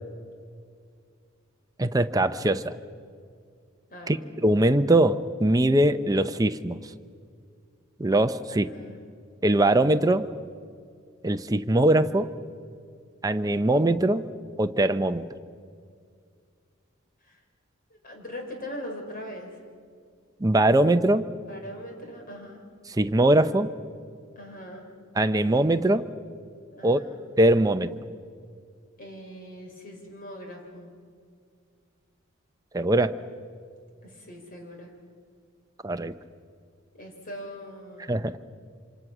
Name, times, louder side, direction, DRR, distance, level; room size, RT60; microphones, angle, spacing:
voice 1, 1.8-2.8 4.1-6.8 8.0-8.7 9.4-10.3 11.2-12.3 13.2-14.3 14.6-15.3 20.4-21.3 22.9-23.7 25.2-26.1 26.8-27.0 27.4-27.9 32.7-33.2 35.8-36.1 38.1-38.4, right 1 dB, 20° right, 9 dB, 0.7 m, -22 dB
voice 2, 3.9-4.2 8.5-8.9 17.2-17.4 17.9-19.6 21.5-22.6 24.4-24.8 26.7-27.2 29.0-30.9 34.0-34.9 36.9-38.1, equal, 45° left, 2 dB, 4.4 m, -41 dB
26.0 x 25.5 x 6.1 m, 2.2 s
head